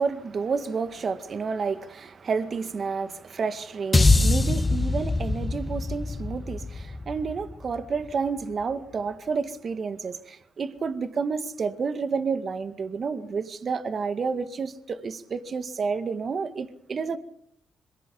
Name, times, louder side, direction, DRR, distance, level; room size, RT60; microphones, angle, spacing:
voice 1, 0.0-17.2, right 5 dB, 50° right, 1.9 m, -30 dB
sound 1, 3.9-8.3, left 2 dB, 25° left, 1.6 m, -24 dB
26.0 x 23.0 x 5.4 m
supercardioid pair, 55°, 0 cm